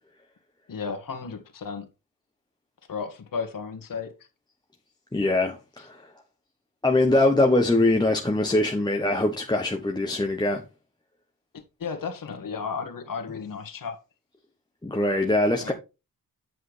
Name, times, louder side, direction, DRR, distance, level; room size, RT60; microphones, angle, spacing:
voice 1, 0.7-1.9 2.9-4.1 11.5-14.0 15.6-15.7, left 5 dB, 60° left, 1.9 m, -34 dB
voice 2, 5.1-6.0 6.8-10.6 14.8-15.7, left 2 dB, 10° left, 1.1 m, -22 dB
8.0 x 7.5 x 3.3 m
cardioid pair, 100°, 37 cm